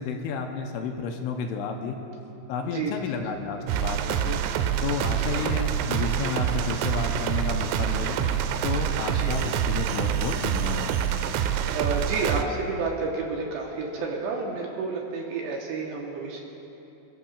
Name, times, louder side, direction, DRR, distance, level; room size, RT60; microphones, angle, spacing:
voice 1, 0.0-2.0 2.5-4.4 4.8-8.2 8.6-10.9, left 6 dB, 80° left, 3 dB, 3.1 m, -31 dB
voice 2, 2.7-3.2 9.1-9.5 11.7-16.4, right 4 dB, 75° right, -1 dB, 2.8 m, -30 dB
Keyboard (musical), 2.9-9.7, equal, 60° left, 3.9 m, -45 dB
sound 1, 3.7-12.4, right 9 dB, 90° right, 3.2 m, -26 dB
26.5 x 14.5 x 2.4 m, 3.0 s
omnidirectional pair, 5.7 m